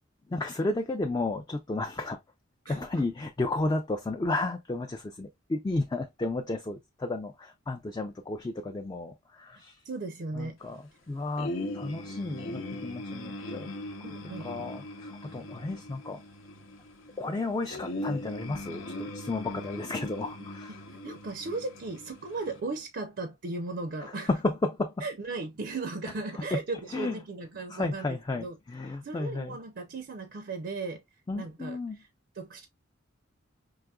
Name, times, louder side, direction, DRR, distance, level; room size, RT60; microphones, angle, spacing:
voice 1, 0.3-2.2 2.7-9.8 10.3-13.7 14.2-16.2 17.2-20.8 24.0-25.0 26.3-26.6 26.9-27.2 27.7-29.6 31.3-32.0, left 2 dB, 20° left, 0.3 m, -33 dB
voice 2, 9.8-10.6 14.0-14.7 15.3-15.4 20.8-24.3 25.0-28.5 29.0-31.0 31.3-32.1 32.3-32.7, right 3 dB, 55° right, 0.5 m, -37 dB
sound 1, 11.4-22.6, left 1 dB, 80° left, 0.8 m, -40 dB
4.8 x 2.9 x 2.3 m
head